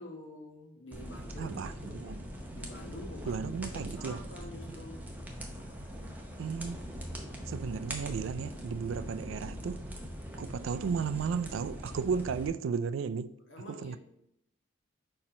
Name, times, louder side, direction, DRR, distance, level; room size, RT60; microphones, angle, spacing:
voice 1, 0.0-2.0 2.5-5.1 7.7-7.8 13.5-14.0, left 1 dB, 65° left, 1.1 m, -47 dB
sound 1, 0.9-12.5, equal, 10° right, 0.7 m, -42 dB
voice 2, 1.4-2.2 3.3-4.2 6.4-6.8 7.5-9.9 10.4-13.3 13.7-14.0, right 6 dB, 65° right, 0.3 m, -34 dB
4.4 x 4.2 x 5.1 m
head